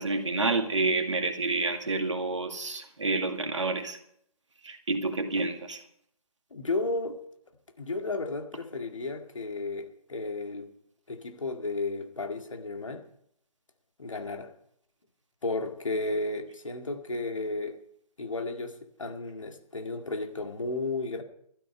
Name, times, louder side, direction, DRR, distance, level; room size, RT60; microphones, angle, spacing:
voice 1, 0.0-4.0 4.6-5.8, right 3 dB, 55° right, 2.2 m, -29 dB
voice 2, 6.5-7.2 7.8-10.7 11.1-13.0 14.0-14.5 15.4-17.8 18.2-21.2, left 3 dB, 55° left, 2.1 m, -33 dB
13.5 x 12.5 x 5.4 m
figure-of-eight pair, 150°, 19 cm